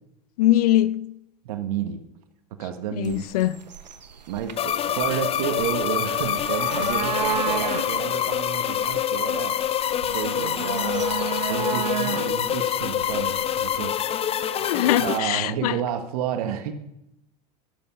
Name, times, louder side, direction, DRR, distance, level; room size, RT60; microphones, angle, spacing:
voice 1, 0.4-1.1 3.0-3.5 14.4-15.7, left 14 dB, 60° left, 0.7 m, -22 dB
voice 2, 1.4-2.0 2.6-3.3 4.3-9.6 10.1-14.0 14.8-16.7, right 9 dB, 60° right, 1.6 m, -31 dB
sound 1, 3.0-13.9, right 7 dB, 80° right, 1.2 m, -33 dB
sound 2, 4.6-15.2, left 10 dB, 25° left, 0.7 m, -26 dB
12.5 x 12.5 x 5.5 m
figure-of-eight pair, 80°, 21 cm